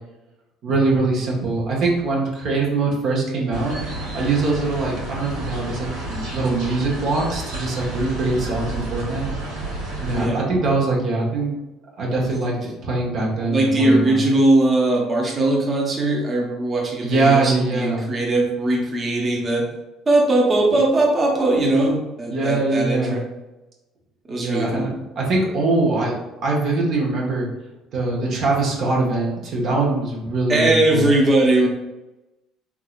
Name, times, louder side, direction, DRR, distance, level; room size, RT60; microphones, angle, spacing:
voice 1, 0.6-3.8 4.1-9.3 10.0-11.5 12.0-12.5 12.8-14.2 17.0-18.0 22.3-23.2 24.4-26.2 26.4-27.5 27.9-31.0, right 3 dB, 60° right, -3 dB, 0.9 m, -22 dB
sound 1, 3.5-10.2, right 2 dB, 85° right, 1.4 m, -30 dB
voice 2, 13.5-19.6 20.1-23.2 24.3-24.9 30.5-31.7, right 2 dB, 30° right, -2 dB, 0.9 m, -19 dB
3.5 x 3.0 x 2.4 m, 1.0 s
hypercardioid pair, 60°, 0 cm